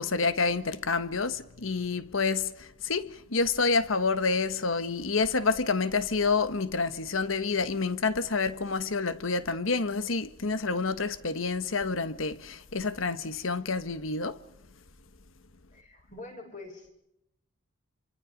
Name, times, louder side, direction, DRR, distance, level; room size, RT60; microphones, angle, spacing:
voice 1, 0.0-14.4, left 4 dB, 90° left, 1.3 m, -28 dB
voice 2, 15.7-16.9, left 2 dB, 40° left, 7.1 m, -45 dB
27.0 x 24.5 x 5.2 m
head